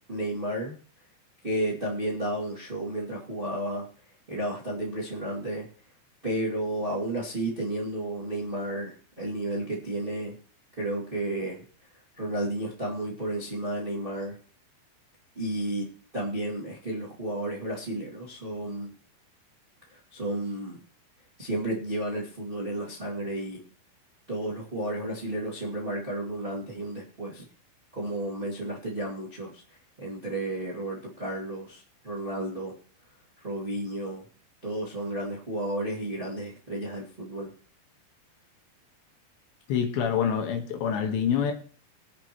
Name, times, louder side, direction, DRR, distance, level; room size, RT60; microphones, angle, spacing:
voice 1, 0.1-0.7 1.4-3.9 4.3-5.7 6.2-10.3 10.8-11.6 12.2-14.4 15.3-18.9 19.9-20.8 21.4-23.6 24.3-27.4 27.9-29.6 30.0-32.7 33.4-34.2 34.6-37.5, right 1 dB, 70° right, -4 dB, 0.5 m, -32 dB
voice 2, 39.7-41.5, left 7 dB, 70° left, 5 dB, 3.3 m, -26 dB
23.5 x 8.3 x 3.1 m, 0.43 s
omnidirectional pair, 5.8 m